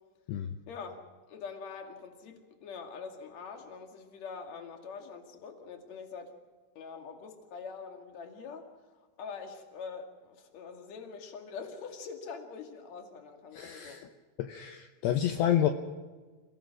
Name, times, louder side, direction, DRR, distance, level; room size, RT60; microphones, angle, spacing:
voice 1, 0.7-1.0 1.3-6.3 6.7-8.7 9.2-14.0, left 5 dB, 45° left, 3 dB, 2.6 m, -44 dB
voice 2, 13.5-14.1 14.4-15.7, left 11 dB, 80° left, 6 dB, 2.5 m, -29 dB
28.0 x 17.5 x 6.2 m, 1.3 s
omnidirectional pair, 5.8 m